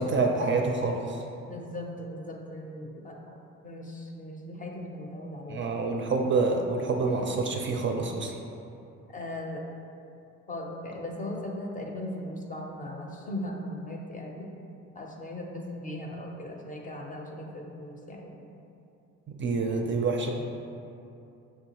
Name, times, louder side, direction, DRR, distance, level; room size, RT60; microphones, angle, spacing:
voice 1, 0.0-1.2 5.5-8.4 19.3-20.3, right 3 dB, 40° right, 2 dB, 0.4 m, -27 dB
voice 2, 1.4-3.4 3.6-5.8 9.1-9.6 10.5-14.5 14.9-18.4, left 1 dB, 25° left, 0 dB, 0.5 m, -38 dB
6.3 x 2.3 x 2.9 m, 2.7 s
cardioid pair, 90°, 30 cm